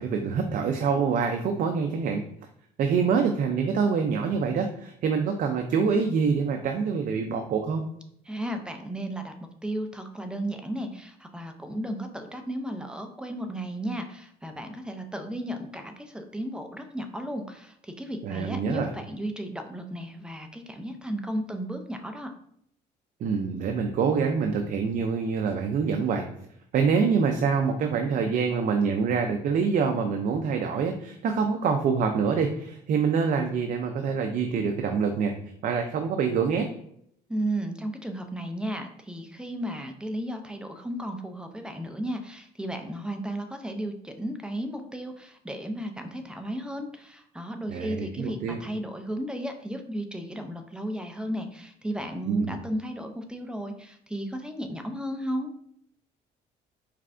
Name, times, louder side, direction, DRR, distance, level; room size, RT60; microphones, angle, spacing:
voice 1, 0.0-2.2 2.8-7.8 18.2-18.9 23.2-26.2 26.7-35.3 35.6-36.7 47.7-48.6 52.3-52.6, right 5 dB, 55° right, 4 dB, 0.5 m, -25 dB
voice 2, 8.3-9.3 9.6-22.3 37.3-55.5, right 1 dB, 5° right, 5 dB, 0.5 m, -34 dB
4.5 x 3.2 x 2.5 m, 0.69 s
cardioid pair, 110°, 17 cm